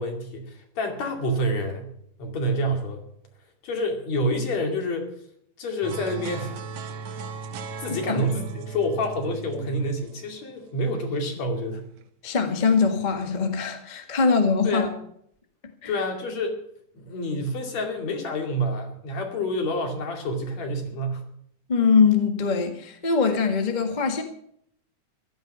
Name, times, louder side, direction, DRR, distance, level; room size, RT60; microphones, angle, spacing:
voice 1, 0.0-1.9 2.2-3.0 3.6-5.1 5.6-6.7 7.1-7.3 7.8-11.8 14.6-14.9 15.9-16.5 17.0-21.2, equal, 60° left, 3.6 m, -28 dB
sound 1, 5.8-11.2, right 5 dB, 70° right, 1.2 m, -37 dB
voice 2, 7.9-8.2 12.2-14.9 15.8-15.9 21.7-24.2, left 5 dB, 25° left, 1.1 m, -22 dB
15.5 x 13.0 x 5.6 m
omnidirectional pair, 3.6 m